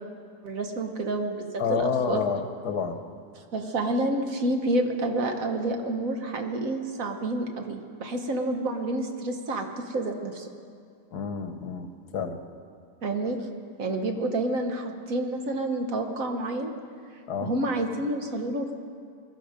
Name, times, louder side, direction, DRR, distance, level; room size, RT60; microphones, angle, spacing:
voice 1, 0.4-2.2 3.5-10.5 13.0-13.4 13.8-16.7 17.4-18.7, right 2 dB, 60° right, 4 dB, 1.6 m, -29 dB
voice 2, 1.6-3.0 11.1-12.4 17.3-17.5, left 6 dB, 85° left, 8 dB, 1.6 m, -29 dB
22.5 x 12.5 x 5.1 m, 2.3 s
omnidirectional pair, 1.7 m